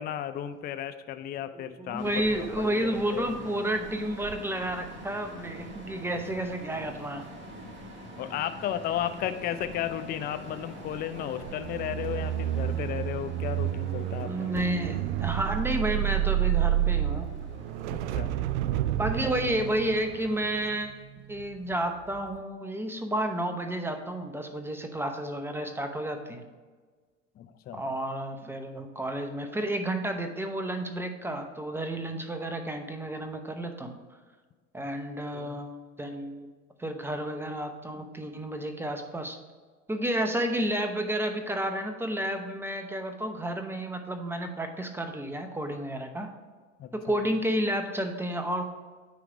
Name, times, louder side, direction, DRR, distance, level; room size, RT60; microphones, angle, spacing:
voice 1, 0.0-3.4 8.2-14.5 17.9-18.5 27.4-27.8 35.3-35.5 46.8-47.2, left 10 dB, 25° left, 10 dB, 0.4 m, -34 dB
voice 2, 1.5-7.2 14.2-17.3 19.0-21.0 21.3-26.5 27.7-34.0 34.7-36.5 36.8-39.4 39.9-46.3 46.9-48.6, right 1 dB, 5° right, 6 dB, 0.8 m, -31 dB
sound 1, 2.0-20.8, right 1 dB, 30° right, 1.7 m, -45 dB
sound 2, 11.4-21.7 22.1-22.4, right 13 dB, 65° right, 0.5 m, -30 dB
9.3 x 3.2 x 5.0 m, 1.4 s
hypercardioid pair, 75°, 37 cm